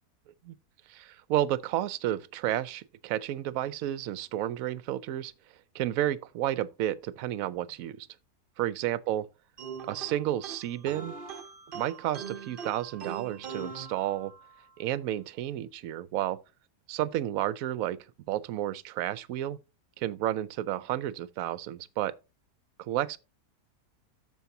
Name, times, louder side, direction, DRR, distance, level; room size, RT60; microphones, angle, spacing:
voice 1, 0.9-5.3 5.7-8.1 8.6-9.3 9.9-11.1 11.7-14.3 14.8-16.4 16.9-18.0 18.3-19.6 20.0-22.1 22.8-23.2, right 13 dB, 70° right, 0.9 m, -31 dB
sound 1, 9.6-14.6, right 6 dB, 50° right, 0.7 m, -42 dB
14.0 x 4.6 x 2.7 m
omnidirectional pair, 1.7 m